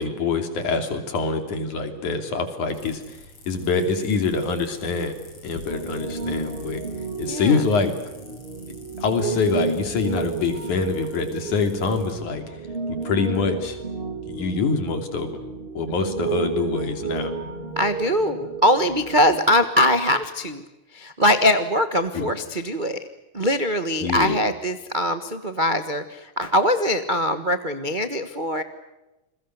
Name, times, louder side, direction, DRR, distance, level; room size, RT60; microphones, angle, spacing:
voice 1, 0.0-3.2 3.5-5.1 5.4-6.8 7.2-7.9 9.0-12.6 12.9-13.8 14.3-15.4 15.8-17.3 22.1-22.3 24.0-24.4, left 4 dB, 75° left, 6 dB, 4.5 m, -25 dB
sound 1, 2.7-12.1, left 2 dB, 50° left, 7.0 m, -47 dB
Piano, 5.7-19.4, right 4 dB, 20° right, 2.5 m, -32 dB
voice 2, 7.3-7.6 17.7-20.6 20.9-23.0 23.3-28.6, left 1 dB, 65° right, 8 dB, 0.4 m, -22 dB
29.0 x 22.0 x 8.0 m, 1.0 s
omnidirectional pair, 3.5 m